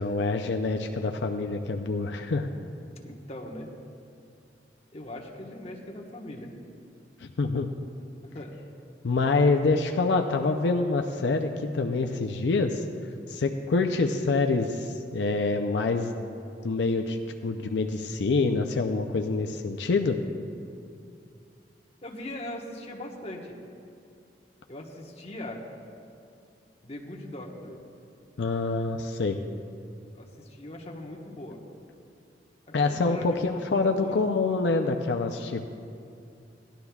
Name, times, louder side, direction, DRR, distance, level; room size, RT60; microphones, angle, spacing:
voice 1, 0.0-2.5 7.2-7.7 9.0-12.8 13.3-16.3 16.6-17.2 17.4-20.2 28.4-29.4 32.7-35.6, left 3 dB, 80° left, 4 dB, 0.5 m, -26 dB
voice 2, 3.0-3.7 4.9-6.5 8.2-8.5 22.0-23.5 24.7-25.6 26.8-27.8 30.1-31.6 32.8-34.1, left 1 dB, 35° left, -1 dB, 1.3 m, -40 dB
17.5 x 11.5 x 2.3 m, 2.5 s
head